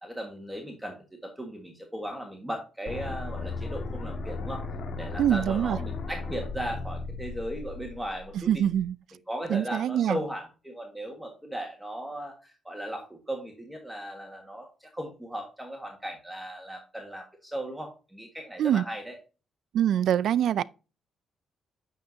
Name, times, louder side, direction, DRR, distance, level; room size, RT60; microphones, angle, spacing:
voice 1, 0.0-4.6 5.0-8.6 9.3-19.2, equal, 5° right, 1.6 m, -37 dB
sound 1, 2.9-8.8, left 3 dB, 60° left, 1.7 m, -36 dB
voice 2, 5.2-5.8 8.5-8.9 9.5-10.2 18.6-18.8 19.7-20.6, right 10 dB, 70° right, 0.3 m, -24 dB
9.1 x 6.7 x 2.7 m
cardioid pair, 90°, 0 cm